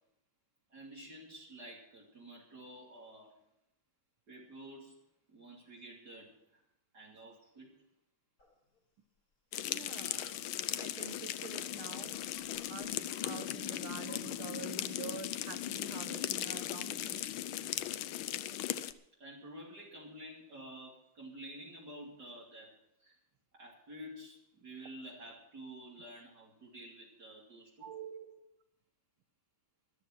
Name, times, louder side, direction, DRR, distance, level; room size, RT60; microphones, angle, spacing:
voice 1, 0.7-3.4 4.3-5.0 5.3-6.6 6.9-7.7 10.0-10.4 19.2-23.2 23.5-28.2, right 1 dB, 50° right, -3 dB, 3.4 m, -50 dB
sound 1, 8.4-8.8 9.7-13.6 13.9-14.3, left 4 dB, 45° left, 2.2 m, -60 dB
sound 2, 9.5-18.9, left 12 dB, 75° left, 1.5 m, -38 dB
voice 2, 9.6-10.2 10.7-12.2 12.7-17.2 27.8-28.5, right 8 dB, 90° right, 9 dB, 1.9 m, -47 dB
13.5 x 12.0 x 6.0 m, 0.80 s
omnidirectional pair, 2.3 m